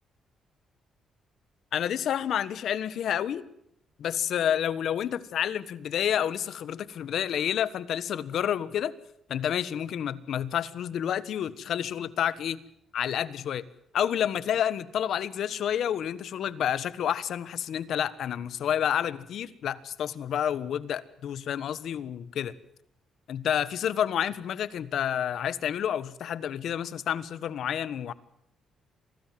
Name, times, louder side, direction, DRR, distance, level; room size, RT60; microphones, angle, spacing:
voice 1, 1.7-3.4 4.0-8.9 9.3-12.6 12.9-13.6 13.9-22.5 23.3-28.1, left 9 dB, 70° left, 16 dB, 1.3 m, -29 dB
26.5 x 19.0 x 7.6 m, 0.76 s
cardioid pair, 90°, 0 cm